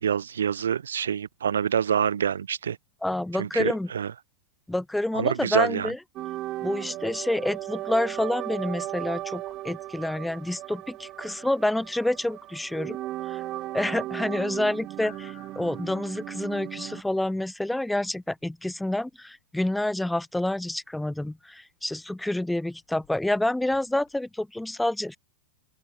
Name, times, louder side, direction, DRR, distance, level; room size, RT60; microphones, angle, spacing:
voice 1, 0.0-2.8 3.3-4.1 5.1-5.9, right 8 dB, 65° right, 0.8 m, -26 dB
voice 2, 3.0-3.9 4.7-6.0 6.6-13.0 13.3-13.4 13.7-25.2, left 1 dB, 5° left, 0.5 m, -28 dB
sound 1, 6.2-17.0, right 15 dB, 35° right, 0.8 m, -36 dB
sound 2, 9.0-24.2, left 29 dB, 45° left, 4.7 m, -61 dB
open air
figure-of-eight pair, 90°, 0 cm